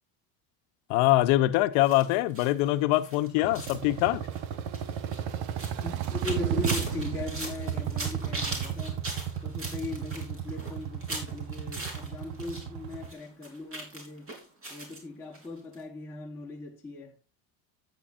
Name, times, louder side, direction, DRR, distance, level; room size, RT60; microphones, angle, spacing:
voice 1, 0.9-4.3, left 16 dB, 75° left, 0.8 m, -24 dB
sound 1, 1.8-12.6 12.9-15.0 15.3-15.5 15.7-15.8, right 2 dB, 30° right, 3.5 m, -40 dB
sound 2, 3.4-13.1, right 9 dB, 85° right, 1.2 m, -33 dB
voice 2, 5.8-9.0 9.4-14.3 14.7-17.2, left 2 dB, 5° left, 1.3 m, -39 dB
13.0 x 8.5 x 2.5 m
cardioid pair, 145°, 46 cm